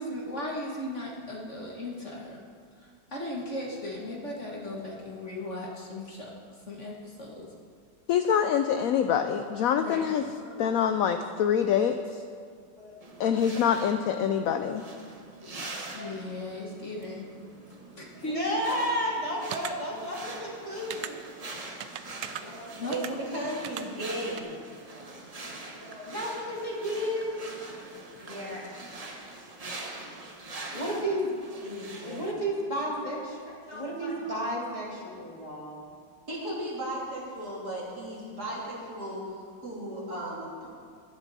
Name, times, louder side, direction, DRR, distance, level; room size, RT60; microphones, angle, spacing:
voice 1, 0.0-2.4 2.8-6.3 6.7-7.5 9.8-10.1 10.4-10.8 12.8-13.4 14.7-14.8 15.4-15.5 15.9-17.3 18.0-18.4 19.9-20.2 22.4-23.2 25.8-26.3, left 1 dB, 40° left, -2 dB, 1.7 m, -37 dB
voice 2, 8.1-10.2 10.6-12.0 13.2-14.8, left 8 dB, 75° left, 8 dB, 0.8 m, -25 dB
sound 1, 13.0-32.3, right 2 dB, 30° right, 0.7 m, -44 dB
voice 3, 18.3-21.2 26.0-27.4 30.7-31.3 32.0-33.4 33.7-35.8, equal, 20° left, -4 dB, 2.2 m, -32 dB
sound 2, 19.5-19.7 20.9-21.1 21.8-22.4 22.9-23.1 23.6-23.8 24.4-24.5, right 11 dB, 75° right, 1.2 m, -36 dB
voice 4, 22.9-24.5 28.2-29.0 31.6-32.3 33.3-34.5 36.3-40.7, right 1 dB, 55° right, -6 dB, 3.8 m, -37 dB
15.5 x 11.5 x 4.1 m, 2.1 s
omnidirectional pair, 2.0 m